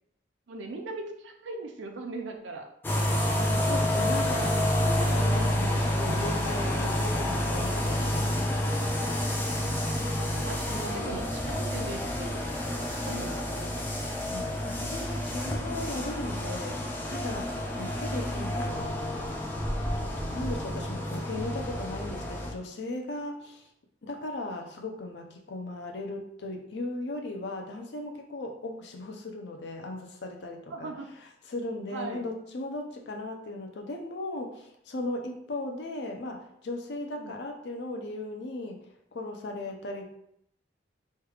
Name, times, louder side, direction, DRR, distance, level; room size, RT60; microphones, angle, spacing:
voice 1, 0.5-2.7 8.1-8.5 9.6-13.8 30.7-31.1 31.9-32.3 37.2-37.3, right 2 dB, 85° right, 4 dB, 0.5 m, -40 dB
sound 1, 2.8-22.5, left 1 dB, 10° left, 0.4 m, -29 dB
voice 2, 3.4-8.3 10.7-11.2 13.1-13.3 14.3-19.1 20.0-23.6 24.0-30.9 31.5-38.8 39.1-40.2, left 2 dB, 70° left, 3 dB, 0.5 m, -37 dB
3.2 x 2.3 x 3.3 m, 0.74 s
head